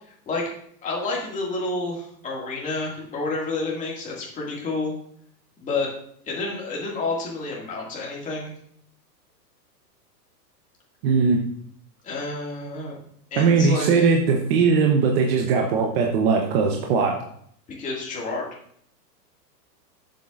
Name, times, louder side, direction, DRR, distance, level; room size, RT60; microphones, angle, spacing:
voice 1, 0.1-0.5 0.8-4.9 5.6-5.9 6.2-8.5 12.0-13.0 13.3-14.2 17.8-18.5, left 3 dB, 15° left, -3 dB, 2.2 m, -29 dB
voice 2, 11.0-11.4 13.4-17.2, right 5 dB, 35° right, 1 dB, 0.9 m, -20 dB
11.0 x 7.7 x 2.5 m, 0.64 s
hypercardioid pair, 150°, 49 cm